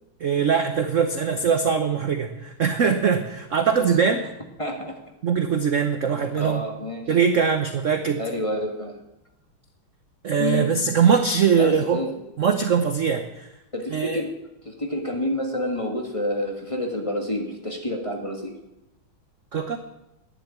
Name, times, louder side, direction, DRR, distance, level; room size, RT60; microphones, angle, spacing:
voice 1, 0.2-4.2 5.2-6.6 7.1-8.2 10.2-12.0 12.4-13.5 13.9-14.2 19.5-19.8, right 6 dB, 55° right, 7 dB, 0.9 m, -22 dB
voice 2, 4.6-5.0 6.4-7.1 8.2-9.0 10.4-10.7 11.6-12.1 13.7-14.3 14.6-18.5, left 1 dB, 15° left, 2 dB, 1.5 m, -28 dB
12.0 x 10.0 x 8.4 m, 0.93 s
omnidirectional pair, 2.3 m